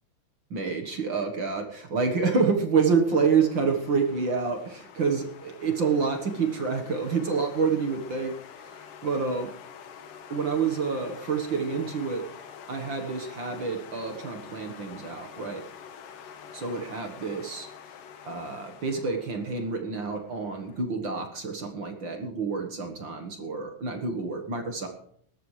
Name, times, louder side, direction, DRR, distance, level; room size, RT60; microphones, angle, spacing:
voice 1, 0.5-8.3 8.6-9.5 10.3-12.2 12.7-15.6 16.5-17.7 18.2-24.9, right 5 dB, 50° right, 4 dB, 1.6 m, -28 dB
sound 1, 3.1-20.8, left 7 dB, 85° left, 2.9 m, -47 dB
19.0 x 13.5 x 3.3 m, 0.63 s
omnidirectional pair, 3.7 m